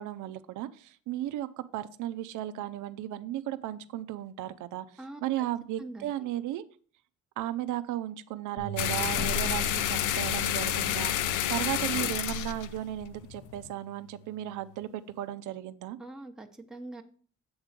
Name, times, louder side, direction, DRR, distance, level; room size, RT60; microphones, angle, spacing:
voice 1, 0.0-6.6 7.4-16.0, right 13 dB, 85° right, 13 dB, 0.6 m, -35 dB
voice 2, 5.0-5.5 5.8-6.1 16.0-17.0, right 2 dB, ahead, 3 dB, 0.8 m, -43 dB
sound 1, 8.6-14.8, right 5 dB, 65° left, 2.3 m, -45 dB
sound 2, 8.8-13.7, left 10 dB, 80° left, 0.5 m, -29 dB
7.9 x 3.7 x 6.5 m, 0.44 s
cardioid pair, 90°, 30 cm